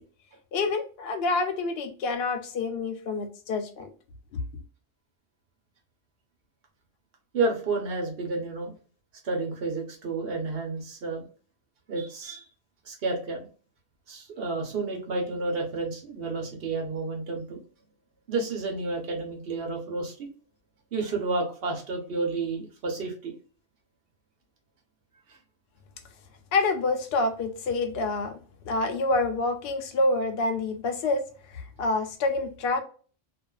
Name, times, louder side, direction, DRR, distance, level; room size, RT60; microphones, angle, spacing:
voice 1, 0.5-3.9 26.5-28.4 28.7-32.8, left 3 dB, 65° left, 0.8 m, -27 dB
voice 2, 7.3-8.7 9.2-11.2 11.9-12.5 12.8-13.4 14.1-17.6 18.3-20.3 20.9-23.3, right 3 dB, 60° right, 1.0 m, -30 dB
2.5 x 2.3 x 2.2 m
omnidirectional pair, 1.2 m